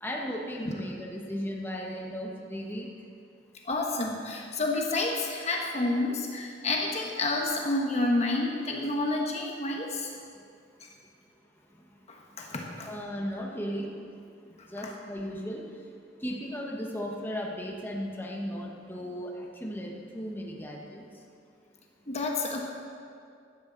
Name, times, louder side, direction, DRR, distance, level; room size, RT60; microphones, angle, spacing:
voice 1, 0.0-2.9 12.8-13.9 14.7-15.6 16.2-21.0, equal, 10° left, -2 dB, 1.4 m, -36 dB
voice 2, 3.6-10.1 10.8-10.9 12.1-12.9 14.6-14.9 22.1-22.6, left 2 dB, 35° left, 0 dB, 1.3 m, -29 dB
16.0 x 12.0 x 4.1 m, 2.3 s
head